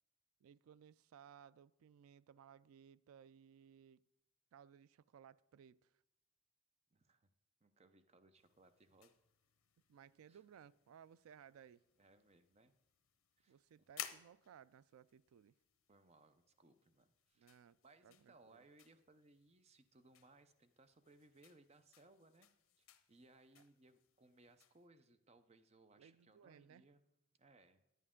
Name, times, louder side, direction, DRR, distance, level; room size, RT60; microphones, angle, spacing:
voice 1, 0.4-4.0 4.5-6.0 9.9-11.9 13.5-15.6 17.4-17.8 18.0-18.7 26.0-26.9, right 8 dB, 90° right, 0.3 m, -62 dB
voice 2, 6.9-7.3 7.6-9.1 10.3-10.4 12.0-12.7 13.4-13.6 15.9-17.5 17.8-22.5 22.8-27.0 27.4-27.8, right 2 dB, 30° right, 0.5 m, -67 dB
sound 1, 8.4-24.9, left 11 dB, 75° left, 0.6 m, -59 dB
11.0 x 9.3 x 3.7 m
head